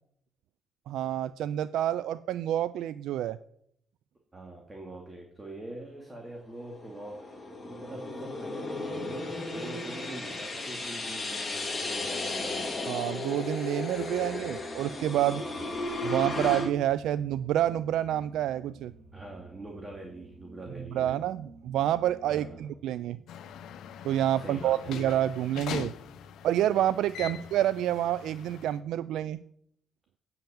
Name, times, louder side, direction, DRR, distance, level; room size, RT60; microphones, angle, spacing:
voice 1, 0.9-3.4 12.9-15.4 16.0-18.9 20.9-23.2 24.0-25.9 26.4-29.4, right 12 dB, 85° right, 15 dB, 0.3 m, -28 dB
voice 2, 4.3-12.7 15.5-15.7 19.1-21.2 22.3-22.6 24.4-25.0 27.2-27.4, right 2 dB, 15° right, 0 dB, 2.2 m, -44 dB
Horror sound, 6.6-16.7, left 2 dB, 20° left, 2.3 m, -35 dB
sound 1, 13.9-22.6, right 3 dB, 40° right, 3.0 m, -53 dB
sound 2, 23.3-28.8, left 8 dB, 80° left, 0.8 m, -42 dB
9.0 x 5.8 x 7.1 m, 0.68 s
cardioid pair, 90°, 0 cm